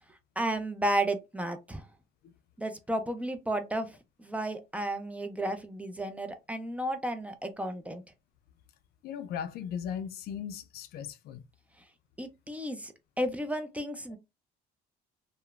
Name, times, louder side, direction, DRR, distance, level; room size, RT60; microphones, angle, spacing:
voice 1, 0.4-1.8 2.6-3.9 4.2-8.0 12.2-14.2, right 1 dB, 10° right, 0.4 m, -33 dB
voice 2, 9.0-11.4, left 8 dB, 70° left, 0.4 m, -37 dB
2.9 x 2.1 x 2.3 m
cardioid pair, 110°, 17 cm